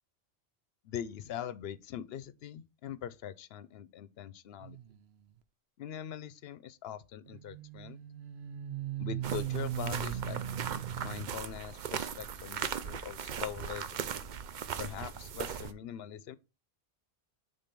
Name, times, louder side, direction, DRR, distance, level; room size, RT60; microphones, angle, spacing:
voice 1, 0.8-4.8 5.8-8.0 9.0-10.4 11.0-14.1 14.8-16.4, left 9 dB, 80° left, 0.8 m, -42 dB
sound 1, 4.6-5.0 7.3-11.3, right 10 dB, 85° right, 0.9 m, -38 dB
sound 2, 9.2-15.7, right 8 dB, 55° right, 0.6 m, -38 dB
5.2 x 3.8 x 5.7 m
omnidirectional pair, 1.0 m